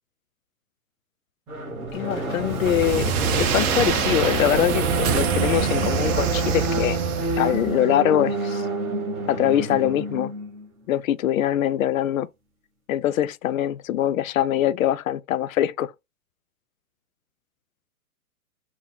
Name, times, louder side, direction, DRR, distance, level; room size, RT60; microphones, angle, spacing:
sound 1, 1.5-10.7, right 3 dB, 5° right, 0.3 m, -28 dB
voice 1, 1.9-7.0 7.4-8.7 9.3-10.3 10.9-12.3 12.9-15.9, left 11 dB, 65° left, 0.5 m, -23 dB
sound 2, 2.5-7.8, right 6 dB, 30° right, 1.0 m, -25 dB
sound 3, 5.0-7.4 7.7-7.8, right 11 dB, 45° right, 0.6 m, -34 dB
4.0 x 3.0 x 3.8 m
hypercardioid pair, 135°, 44 cm